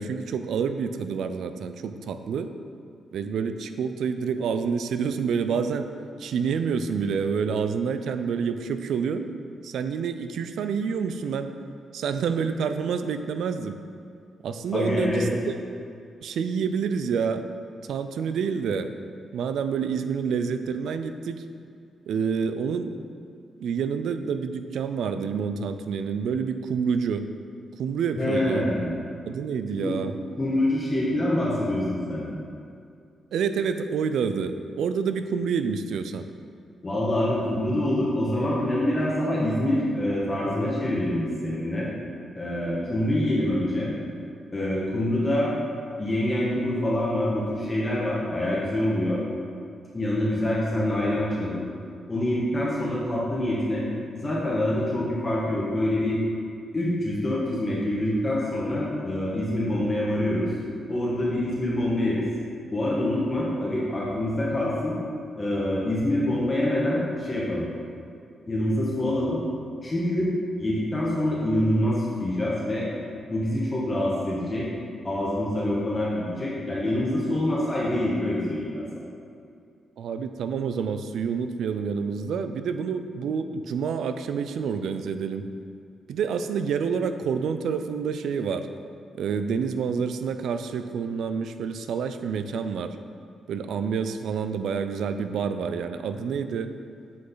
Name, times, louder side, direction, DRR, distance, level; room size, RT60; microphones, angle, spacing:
voice 1, 0.0-2.5 3.1-5.9 6.2-9.3 9.6-11.5 11.9-13.8 14.4-15.3 16.2-17.4 17.9-18.9 19.3-21.4 22.1-22.9 23.6-27.3 27.8-28.7 29.3-30.1 33.3-36.3 80.0-85.5 86.1-88.7 89.1-93.0 93.5-96.7, right 6 dB, 80° right, 9 dB, 0.4 m, -28 dB
voice 2, 14.7-15.3 28.2-28.9 29.8-29.9 30.4-32.3 36.8-41.9 42.4-43.9 44.5-45.5 46.0-49.2 49.9-51.6 52.1-53.9 54.2-56.2 56.7-60.5 60.9-62.3 62.7-65.0 65.4-67.7 68.5-69.4 69.8-70.3 70.6-72.9 73.3-74.7 75.0-79.1, left 1 dB, 30° left, -7 dB, 1.7 m, -25 dB
8.2 x 5.2 x 4.0 m, 2.4 s
cardioid pair, 75°, 0 cm